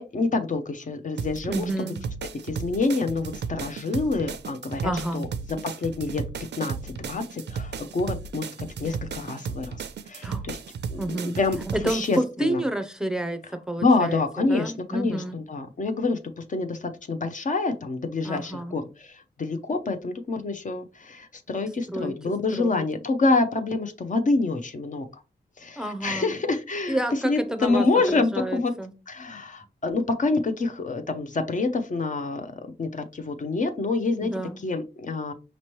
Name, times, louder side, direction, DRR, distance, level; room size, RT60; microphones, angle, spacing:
voice 1, 0.0-1.9 2.4-5.3 5.6-6.2 6.5-8.5 8.8-10.6 10.9-11.6 11.8-12.6 13.8-25.2 25.6-28.7 29.1-34.3 34.6-35.3, left 3 dB, 45° left, 7 dB, 0.6 m, -27 dB
sound 1, 1.2-12.2, right 6 dB, 80° right, 0.4 m, -35 dB
voice 2, 1.5-2.0 4.8-5.3 10.2-10.4 11.0-11.4 11.7-13.4 13.7-14.2 14.5-15.4 18.2-18.8 21.9-22.2 22.5-22.9 25.8-26.3 26.9-27.9 28.1-28.9 34.2-34.6, right 1 dB, 5° right, 8 dB, 0.5 m, -29 dB
5.2 x 3.0 x 3.0 m, 0.30 s
wide cardioid pair, 110°, 18 cm